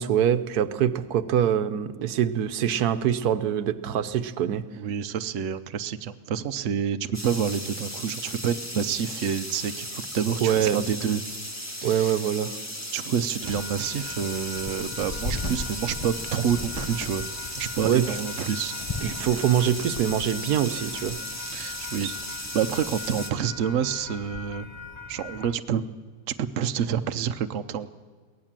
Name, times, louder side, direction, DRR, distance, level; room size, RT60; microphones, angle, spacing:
voice 1, 0.0-4.6 10.4-10.8 11.8-12.5 17.8-18.0 19.0-21.2 22.0-22.1, right 9 dB, 85° right, 12 dB, 1.3 m, -24 dB
voice 2, 4.7-11.2 11.8-12.1 12.9-17.3 17.6-18.7 21.5-22.1 22.5-24.7 25.1-26.0 26.3-27.9, right 8 dB, 60° right, 9 dB, 1.0 m, -28 dB
sound 1, 7.1-23.3, equal, 10° left, 1.6 m, -36 dB
sound 2, 13.4-25.6, left 3 dB, 30° left, 0.6 m, -38 dB
22.5 x 18.0 x 7.5 m, 1.5 s
omnidirectional pair, 1.6 m